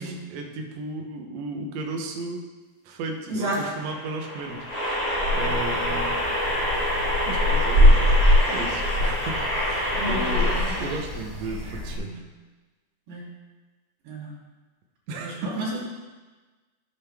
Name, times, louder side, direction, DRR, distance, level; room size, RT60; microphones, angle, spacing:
voice 1, 0.0-2.4 2.8-6.1 7.3-12.2 15.1-15.8, right 3 dB, 70° right, 2 dB, 1.6 m, -35 dB
sound 1, 3.5-11.0, equal, 25° left, 1.6 m, -27 dB
sound 2, 4.7-12.0, left 1 dB, 15° right, 3.5 m, -23 dB
voice 2, 9.9-11.0 11.9-12.2 13.1-13.2 14.0-14.3 15.2-15.8, right 1 dB, 35° right, -6 dB, 3.6 m, -32 dB
13.5 x 7.7 x 3.5 m, 1.3 s
omnidirectional pair, 4.6 m